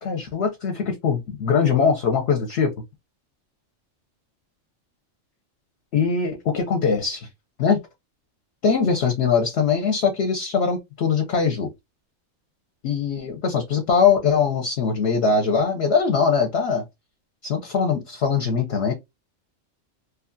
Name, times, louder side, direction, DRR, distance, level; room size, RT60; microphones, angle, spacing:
voice 1, 0.0-2.7 5.9-7.3 7.6-7.8 8.6-11.7 12.8-16.8 17.4-18.9, left 6 dB, 60° left, 0.9 m, -21 dB
3.0 x 2.3 x 2.5 m
omnidirectional pair, 1.4 m